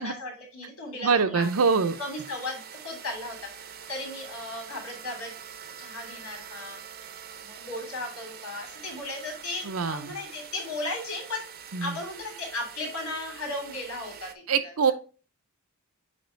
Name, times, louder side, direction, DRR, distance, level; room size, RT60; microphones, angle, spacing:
voice 1, 0.0-1.7 2.0-3.4 3.9-5.3 5.8-6.8 7.4-11.4 11.8-14.7, left 2 dB, 85° left, 1 dB, 3.1 m, -36 dB
voice 2, 1.0-2.0 9.6-10.1 11.7-12.0 14.5-14.9, right 5 dB, 80° right, 10 dB, 0.7 m, -24 dB
sound 1, 1.4-14.3, right 8 dB, 45° right, 0.6 m, -45 dB
8.6 x 3.0 x 4.5 m, 0.36 s
head